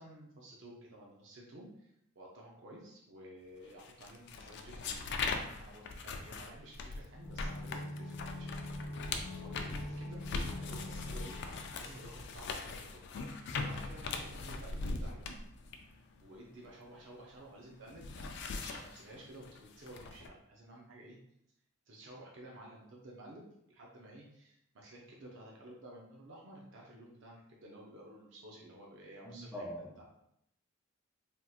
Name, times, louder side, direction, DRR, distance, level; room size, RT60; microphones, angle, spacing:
voice 1, 0.0-8.8 9.2-15.3 16.2-21.2 21.9-30.0, right 1 dB, 65° right, -2 dB, 0.5 m, -53 dB
sound 1, 3.8-17.3 17.6-20.3, left 3 dB, 55° left, 0.3 m, -41 dB
sound 2, 7.1-12.8 13.0-13.1, left 1 dB, 80° left, 0.7 m, -44 dB
voice 2, 29.2-30.0, equal, 5° right, -4 dB, 0.6 m, -43 dB
3.5 x 2.8 x 2.3 m, 0.77 s
head